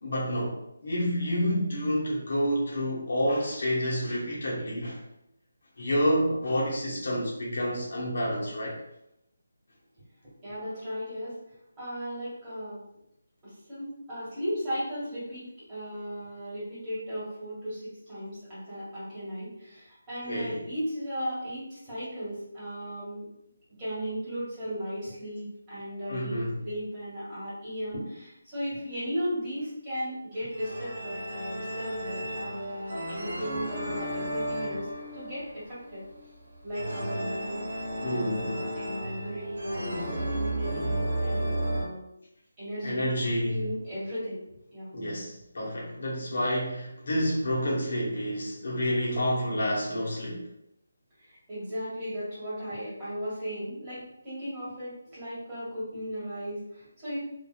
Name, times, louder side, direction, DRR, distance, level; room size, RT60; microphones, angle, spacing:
voice 1, 0.0-5.0 5.8-8.8 20.2-20.6 26.1-26.6 38.0-38.7 42.8-43.7 44.9-50.5, equal, 60° left, -4 dB, 0.9 m, -29 dB
voice 2, 10.4-11.4 11.8-12.8 13.4-23.3 23.8-34.9 35.1-36.0 36.6-37.6 38.0-42.0 42.6-43.1 43.4-44.4 44.7-44.9 51.2-57.2, equal, 20° right, -11 dB, 1.5 m, -36 dB
sound 1, 30.5-41.8, right 1 dB, 75° right, 0.9 m, -33 dB
2.7 x 2.4 x 2.3 m, 0.80 s
figure-of-eight pair, 165°, 0 cm